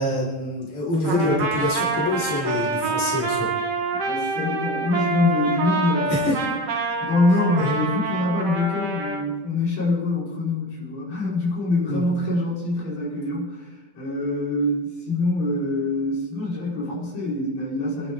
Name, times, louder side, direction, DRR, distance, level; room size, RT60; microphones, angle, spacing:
voice 1, 0.0-3.5 6.1-6.4 7.6-7.8 11.9-12.1, left 1 dB, 65° left, -4 dB, 5.9 m, -25 dB
Trumpet, 1.0-9.2, right 4 dB, 50° right, 2.2 m, -26 dB
voice 2, 4.0-6.3 7.0-13.7 13.9-18.1, left 2 dB, 85° left, -8 dB, 6.2 m, -24 dB
27.5 x 12.0 x 3.6 m, 1.1 s
omnidirectional pair, 4.1 m